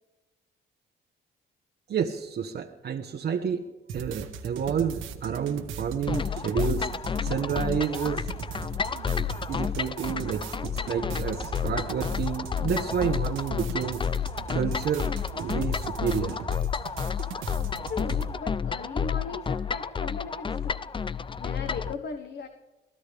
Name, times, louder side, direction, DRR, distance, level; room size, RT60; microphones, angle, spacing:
voice 1, 1.9-3.7 3.9-8.3 9.5-16.4, right 7 dB, 55° right, 2 dB, 1.1 m, -30 dB
sound 1, 3.9-18.3, right 6 dB, 85° right, 1.5 m, -39 dB
sound 2, 6.1-21.9, left 7 dB, 25° left, 0.5 m, -31 dB
voice 2, 17.9-20.8 21.4-22.5, left 5 dB, 55° left, 7 dB, 1.4 m, -37 dB
23.5 x 16.0 x 3.4 m, 1.1 s
cardioid pair, 90°, 20 cm